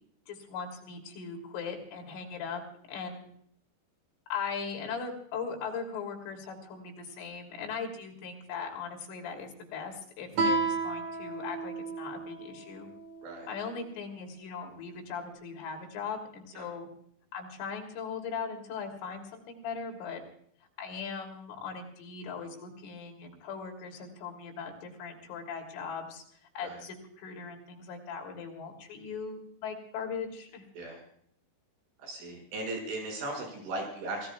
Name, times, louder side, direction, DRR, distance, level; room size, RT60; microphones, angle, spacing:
voice 1, 0.3-2.6 2.9-3.3 4.3-12.9 13.5-16.9 17.3-20.2 20.8-26.2 26.6-30.7, left 5 dB, 80° left, 3 dB, 5.5 m, -39 dB
Guitar, 10.3-13.6, right 3 dB, 45° right, 4.6 m, -32 dB
voice 2, 32.0-34.3, right 2 dB, 75° right, 2 dB, 8.5 m, -37 dB
27.0 x 18.0 x 2.4 m, 0.65 s
omnidirectional pair, 5.6 m